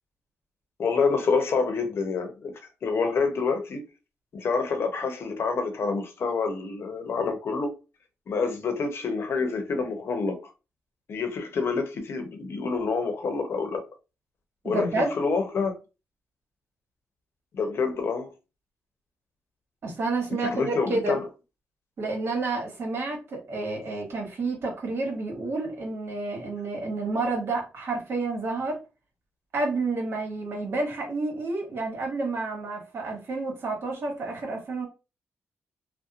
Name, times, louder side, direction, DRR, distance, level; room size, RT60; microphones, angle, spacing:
voice 1, 0.8-2.5 2.8-3.8 4.3-7.7 8.3-10.4 11.1-13.8 14.6-15.8 17.5-18.3 20.4-21.2, left 4 dB, 60° left, 0.7 m, -27 dB
voice 2, 14.6-15.1 19.8-21.2 22.0-28.8 29.5-34.9, right 3 dB, 60° right, 1.2 m, -30 dB
2.7 x 2.1 x 2.4 m
cardioid pair, 65°, 5 cm